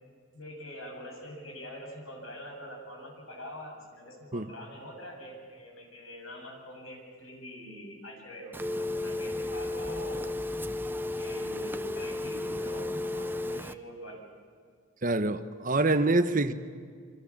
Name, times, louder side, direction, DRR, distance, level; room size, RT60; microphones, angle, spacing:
voice 1, 0.3-10.3 11.2-14.2, equal, 80° left, 7.7 m, -44 dB
Telephone, 8.5-13.7, left 2 dB, 10° right, 0.7 m, -33 dB
voice 2, 15.0-16.5, right 2 dB, 40° right, 1.0 m, -25 dB
28.0 x 25.0 x 7.4 m
head